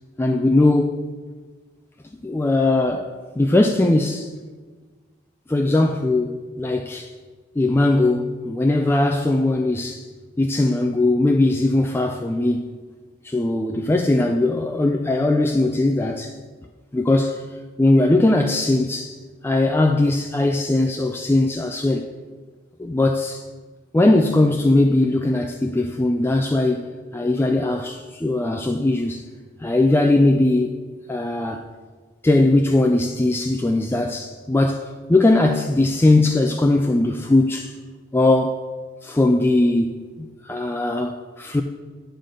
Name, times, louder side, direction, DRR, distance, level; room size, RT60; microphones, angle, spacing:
voice 1, 0.2-1.1 2.2-4.3 5.5-7.1 7.6-10.0 10.4-12.7 13.2-16.3 16.9-17.4 17.8-19.2 19.4-22.1 22.8-23.4 23.9-26.9 27.1-29.3 29.6-30.7 31.1-31.7 32.2-37.7 38.1-38.6 39.0-41.6, left 2 dB, 15° left, 0.3 m, -19 dB
10.0 x 3.8 x 6.4 m
head